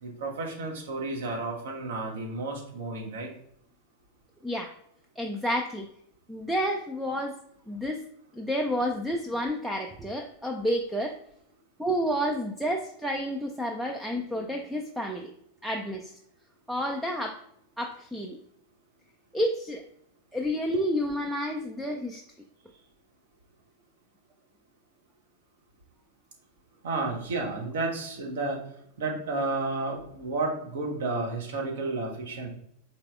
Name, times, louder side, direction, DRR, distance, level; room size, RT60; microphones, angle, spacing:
voice 1, 0.0-3.3 26.8-28.6 29.0-32.5, right 3 dB, 60° right, 0 dB, 1.0 m, -32 dB
voice 2, 5.2-5.9 6.3-7.4 7.7-8.0 8.3-11.2 11.8-15.3 15.6-16.1 16.7-17.4 17.8-18.4 19.3-19.8 20.3-22.2, equal, 5° right, 1 dB, 0.4 m, -30 dB
4.5 x 3.2 x 2.4 m, 0.70 s
figure-of-eight pair, 90°, 0 cm